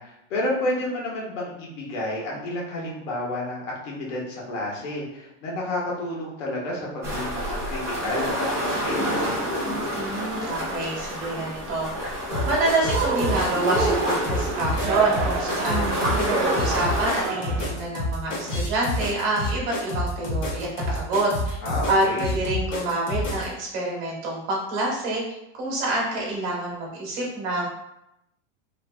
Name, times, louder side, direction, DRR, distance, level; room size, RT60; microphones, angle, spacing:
voice 1, 0.0-9.0 21.6-22.3, left 1 dB, 80° left, -3 dB, 1.3 m, -30 dB
sound 1, 7.0-17.3, equal, 10° right, 0.6 m, -28 dB
voice 2, 10.0-11.9 12.4-21.6 21.9-25.2 25.6-27.7, right 2 dB, 40° right, -3 dB, 1.1 m, -27 dB
sound 2, 12.3-23.5, left 1 dB, 35° left, 0.8 m, -28 dB
Cheering, 12.8-17.8, right 4 dB, 85° right, 0.7 m, -29 dB
3.2 x 2.5 x 2.2 m, 0.85 s
supercardioid pair, 160°, 36 cm